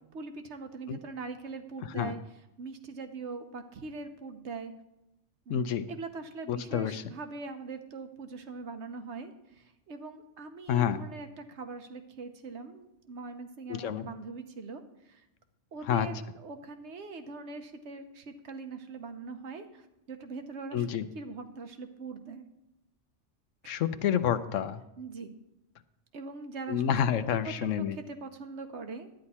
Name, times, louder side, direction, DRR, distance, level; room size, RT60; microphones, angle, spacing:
voice 1, 0.1-2.2 2.6-4.7 5.5-15.2 15.7-20.9 21.1-22.5 23.6-23.8 25.0-25.3 26.1-27.1 27.4-29.1, right 4 dB, 65° right, 7 dB, 1.2 m, -42 dB
voice 2, 5.5-5.9 6.5-7.0 10.7-11.0 13.7-14.1 15.9-16.1 20.7-21.1 23.7-24.8 26.7-28.0, left 9 dB, 85° left, 12 dB, 1.0 m, -28 dB
11.5 x 9.7 x 4.2 m, 0.89 s
omnidirectional pair, 1.3 m